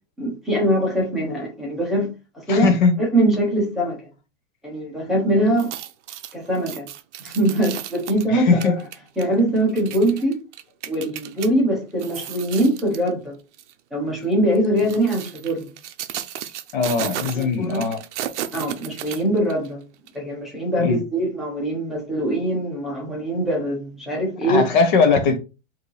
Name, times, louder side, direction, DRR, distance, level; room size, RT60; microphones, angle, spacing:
voice 1, 0.2-2.1 2.5-4.0 4.6-5.7 6.3-6.9 7.2-8.7 9.2-10.4 10.8-13.3 13.9-15.6 17.3-17.9 18.5-19.8 20.1-24.6, right 1 dB, ahead, 0.8 m, -22 dB
voice 2, 2.5-2.9 8.3-8.8 16.7-18.0 20.8-21.0 24.5-25.4, left 5 dB, 40° left, 0.7 m, -19 dB
sound 1, 5.5-11.5 11.9-13.1 13.5-13.7 14.5-19.7 20.1-20.2, right 11 dB, 65° right, 0.6 m, -34 dB
5.0 x 2.7 x 3.2 m
supercardioid pair, 170°, 38 cm